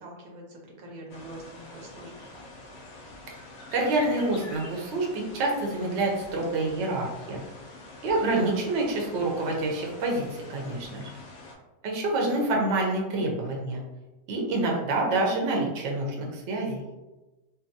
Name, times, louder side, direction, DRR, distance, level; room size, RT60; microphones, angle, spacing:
voice 1, 0.0-2.3 8.1-8.5, right 2 dB, 85° right, -1 dB, 1.1 m, -41 dB
sound 1, 1.1-11.5, left 2 dB, 65° left, 0.7 m, -46 dB
voice 2, 3.7-7.4 8.0-11.1 11.8-13.8 14.3-16.8, right 2 dB, 60° right, -1 dB, 0.8 m, -27 dB
2.6 x 2.3 x 2.6 m, 1.1 s
omnidirectional pair, 1.5 m